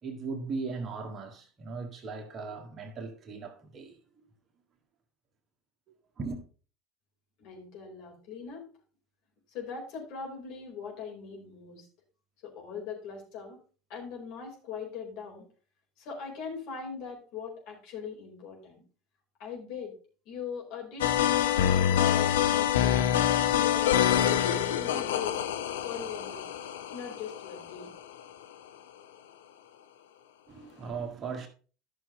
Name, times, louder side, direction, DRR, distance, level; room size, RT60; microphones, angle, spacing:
voice 1, 0.0-4.0 6.2-6.4 30.5-31.5, right 4 dB, 30° right, 1.9 m, -38 dB
voice 2, 7.4-8.6 9.5-11.9 12.4-13.6 13.9-15.5 16.0-18.8 19.4-19.9 20.2-24.4 24.7-25.4 25.8-26.4 26.9-27.9, left 6 dB, 55° left, 4.7 m, -40 dB
sound 1, 21.0-28.2, left 10 dB, 70° left, 0.9 m, -26 dB
12.5 x 6.4 x 3.9 m
figure-of-eight pair, 70°, 0 cm